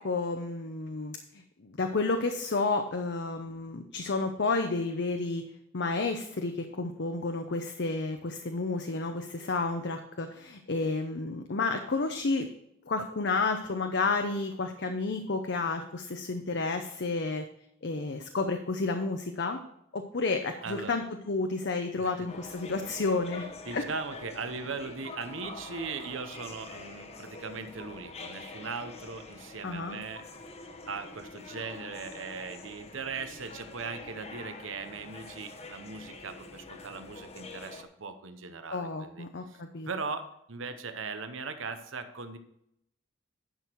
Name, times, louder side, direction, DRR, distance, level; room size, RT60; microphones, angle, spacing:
voice 1, 0.0-5.4 5.7-12.5 12.9-17.4 17.8-19.6 19.9-23.5 23.7-23.8 29.6-30.0 38.7-39.9, left 3 dB, 60° left, 6 dB, 0.7 m, -31 dB
voice 2, 20.6-20.9 22.0-22.1 23.7-30.2 30.9-42.4, right 4 dB, 75° right, 9 dB, 0.9 m, -39 dB
sound 1, 22.3-37.8, left 3 dB, 30° left, 0.9 m, -46 dB
10.5 x 6.1 x 4.6 m, 0.77 s
head